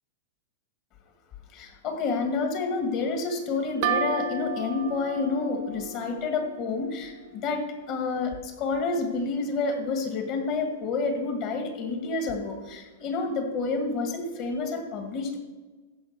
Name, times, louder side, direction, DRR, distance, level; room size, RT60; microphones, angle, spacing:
voice 1, 1.5-15.4, left 4 dB, 35° left, 4 dB, 1.9 m, -29 dB
sound 1, 3.8-7.4, right 5 dB, 40° right, 0.9 m, -33 dB
15.0 x 5.1 x 6.6 m, 1.3 s
supercardioid pair, 160°, 0 cm